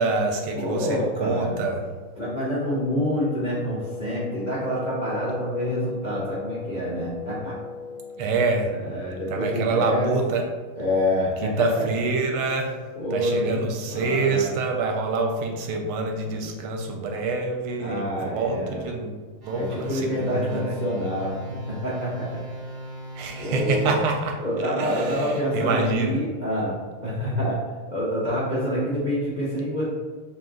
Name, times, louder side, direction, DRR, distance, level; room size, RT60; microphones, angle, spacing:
voice 1, 0.0-1.9 8.2-8.7 9.3-10.4 11.4-12.8 13.1-19.2 19.4-20.8 23.1-24.4 24.6-26.2, right 3 dB, 85° right, 2 dB, 1.5 m, -26 dB
voice 2, 0.5-1.6 2.2-7.5 8.8-10.1 10.8-11.8 13.0-13.6 13.9-14.6 17.8-18.9 19.5-21.3 21.7-22.3 23.4-23.9 24.4-26.8 27.0-27.6 27.9-29.8, equal, 65° left, -8 dB, 0.4 m, -27 dB
Wind instrument woodwind instrument, 2.6-8.3, left 5 dB, 85° left, 0.9 m, -37 dB
sound 1, 19.4-24.6, equal, 40° right, 0.8 m, -38 dB
3.8 x 2.9 x 3.7 m, 1.5 s
omnidirectional pair, 2.4 m